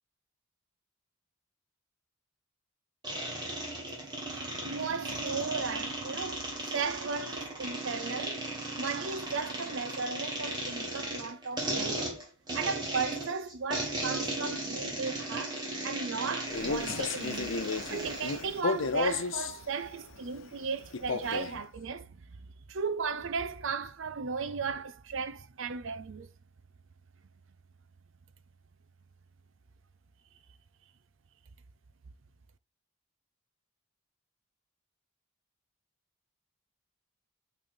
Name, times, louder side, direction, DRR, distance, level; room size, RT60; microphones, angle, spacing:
sound 1, 3.0-18.4, right 1 dB, 20° right, 2.0 m, -36 dB
voice 1, 4.0-12.2 12.5-17.6 17.9-26.3, right 5 dB, 60° right, 0.6 m, -36 dB
Male speech man speaking, 16.4-19.6 20.9-21.6, left 4 dB, 60° left, 0.7 m, -33 dB
5.8 x 4.2 x 4.4 m
head